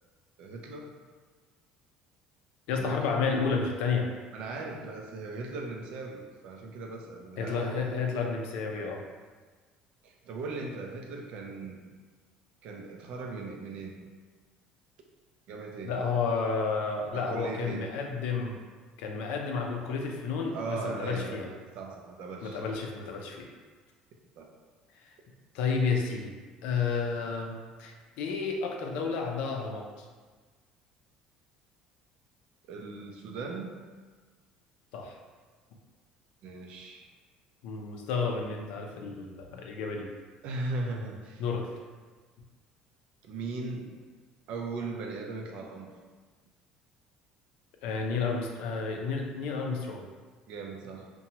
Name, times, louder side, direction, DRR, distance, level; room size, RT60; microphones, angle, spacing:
voice 1, 0.4-0.9 2.7-3.0 4.3-7.9 10.0-11.9 12.6-14.0 15.5-15.9 17.1-17.9 20.5-21.4 21.7-22.7 24.4-24.5 32.7-33.8 36.4-37.1 40.4-41.4 43.2-43.9 44.5-45.9 50.5-51.1, right 3 dB, 60° right, 1 dB, 0.4 m, -38 dB
voice 2, 2.7-4.1 7.4-9.0 15.8-18.6 19.0-21.5 22.4-23.5 25.5-26.3 26.6-30.0 34.9-35.1 37.6-40.1 41.4-41.7 47.8-50.1, left 5 dB, 80° left, 1 dB, 0.4 m, -31 dB
2.7 x 2.2 x 2.8 m, 1.4 s
cardioid pair, 140°, 2 cm